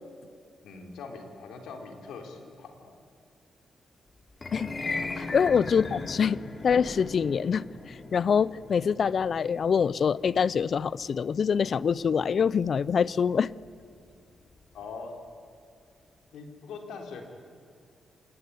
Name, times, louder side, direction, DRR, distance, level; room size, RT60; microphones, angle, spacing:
voice 1, 0.6-3.0 5.3-5.5 14.7-15.2 16.3-17.4, left 4 dB, 80° left, 3 dB, 4.0 m, -42 dB
sound 1, 4.3-14.6, left 3 dB, 40° left, 3.3 m, -40 dB
voice 2, 5.3-13.5, left 6 dB, 60° left, 21 dB, 0.6 m, -25 dB
Explosion, 6.7-9.3, right 1 dB, 10° right, 2.6 m, -48 dB
27.0 x 20.0 x 9.6 m, 2.3 s
supercardioid pair, 60°, 0 cm